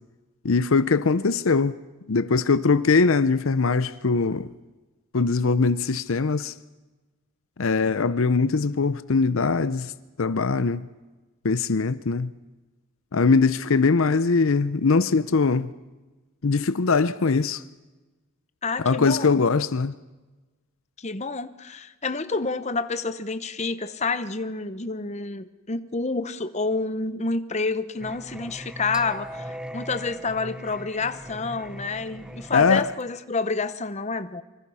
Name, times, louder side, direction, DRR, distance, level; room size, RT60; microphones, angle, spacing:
voice 1, 0.4-1.8 2.1-4.5 5.1-6.5 7.6-9.9 10.2-10.9 11.4-12.3 13.1-15.7 16.4-17.6 18.8-19.9 32.5-32.9, left 4 dB, 65° left, 0.7 m, -21 dB
voice 2, 18.6-19.3 21.0-34.4, left 3 dB, 30° left, 1.0 m, -29 dB
Singing, 28.0-33.0, equal, 5° right, 0.7 m, -39 dB
26.5 x 25.0 x 5.6 m
head